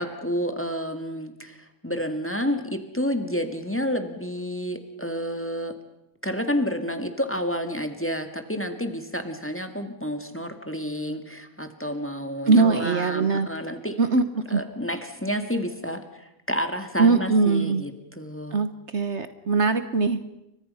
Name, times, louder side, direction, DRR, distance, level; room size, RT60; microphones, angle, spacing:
voice 1, 0.0-5.8 6.2-14.0 14.5-18.6, equal, 10° left, 7 dB, 1.9 m, -30 dB
voice 2, 12.5-13.5 14.0-14.6 17.0-17.8 18.5-20.2, right 4 dB, 55° right, 11 dB, 1.4 m, -21 dB
29.5 x 24.5 x 5.6 m, 0.85 s
omnidirectional pair, 1.5 m